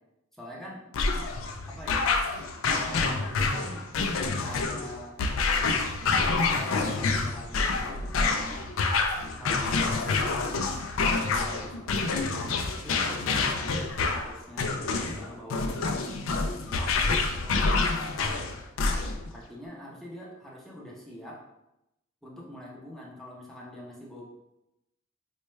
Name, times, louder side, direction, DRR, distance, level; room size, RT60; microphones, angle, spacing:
voice 1, 0.3-0.8 1.7-2.1 2.6-3.9 4.4-5.2 6.5-8.6 9.4-10.2 11.2-13.6 14.1-16.2 16.7-17.1 17.4-18.6 19.3-21.4 22.2-24.2, equal, ahead, -4 dB, 0.6 m, -44 dB
sound 1, 0.9-19.3, left 4 dB, 90° left, 0.4 m, -27 dB
4.2 x 2.2 x 3.1 m, 0.89 s
head